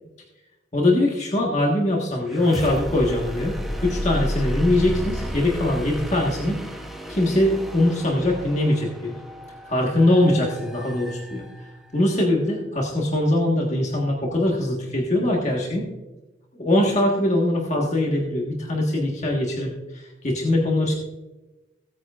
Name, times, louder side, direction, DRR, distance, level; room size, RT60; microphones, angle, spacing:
voice 1, 0.7-3.5 3.8-6.6 7.1-9.2 9.7-11.4 11.9-15.9 16.5-20.9, left 1 dB, 35° left, -1 dB, 1.5 m, -22 dB
sound 1, 2.2-12.0, equal, ahead, 0.8 m, -33 dB
16.5 x 9.3 x 2.5 m, 1.1 s
head